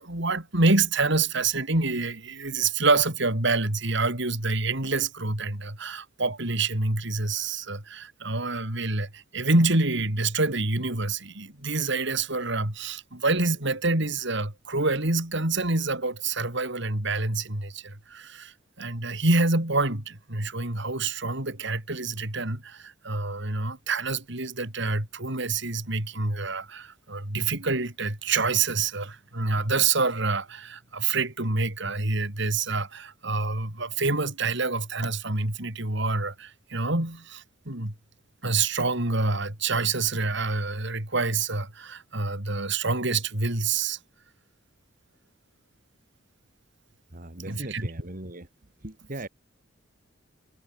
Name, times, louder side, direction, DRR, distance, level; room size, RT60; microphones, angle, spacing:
voice 1, 0.0-37.9 38.4-44.0 47.4-47.9, right 3 dB, 65° right, 4.2 m, -27 dB
voice 2, 47.1-48.5 48.8-49.3, right 1 dB, 45° right, 2.6 m, -38 dB
head